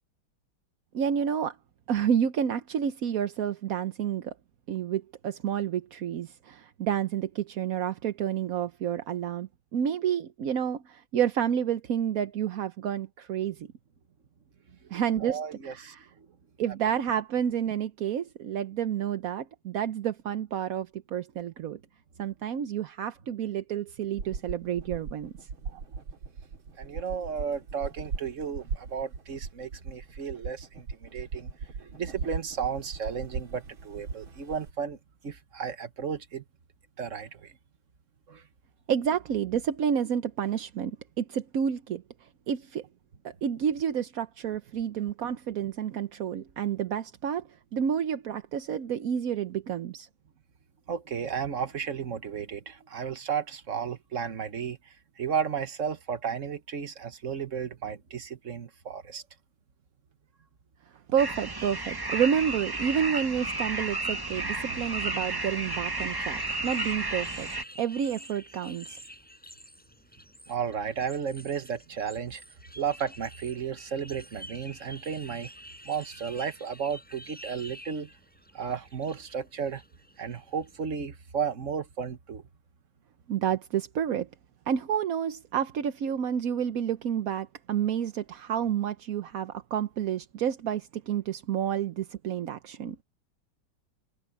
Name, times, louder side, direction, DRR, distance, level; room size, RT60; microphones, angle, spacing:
voice 1, 0.9-1.6 1.9-4.3 4.7-13.7 14.9-16.1 16.6-21.8 22.2-25.3 25.7-25.8 38.9-42.0 42.5-42.9 43.2-47.4 47.7-50.1 61.1-67.5 67.8-69.0 83.3-84.3 84.7-93.0, right 8 dB, 60° right, 1.0 m, -29 dB
voice 2, 15.2-16.3 26.8-31.5 31.8-35.0 35.2-36.4 37.0-37.5 38.3-38.4 50.9-59.2 70.5-72.4 72.8-75.5 75.8-78.1 78.5-79.8 80.2-82.4, right 7 dB, 40° right, 1.5 m, -33 dB
sound 1, 24.1-34.7, right 5 dB, 75° right, 2.9 m, -38 dB
sound 2, 61.2-67.6, right 2 dB, 15° right, 0.8 m, -32 dB
sound 3, 66.0-80.9, equal, 5° left, 4.9 m, -49 dB
omnidirectional pair, 2.2 m